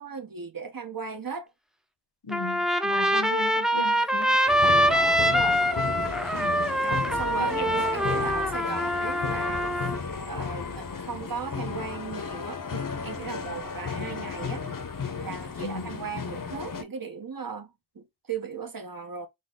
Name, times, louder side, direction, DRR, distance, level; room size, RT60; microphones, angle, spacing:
voice 1, 0.0-1.5 2.9-3.1 4.7-5.6 6.8-9.7 10.3-14.6 15.2-19.3, right 6 dB, 55° right, 1.0 m, -37 dB
voice 2, 2.2-4.4 6.3-6.7 7.4-7.6 15.6-16.0, left 4 dB, 75° left, 1.0 m, -37 dB
Trumpet, 2.3-10.0, equal, ahead, 0.6 m, -24 dB
sound 1, 4.5-16.8, left 5 dB, 50° left, 0.8 m, -34 dB
4.0 x 2.1 x 3.7 m
wide cardioid pair, 45°, 41 cm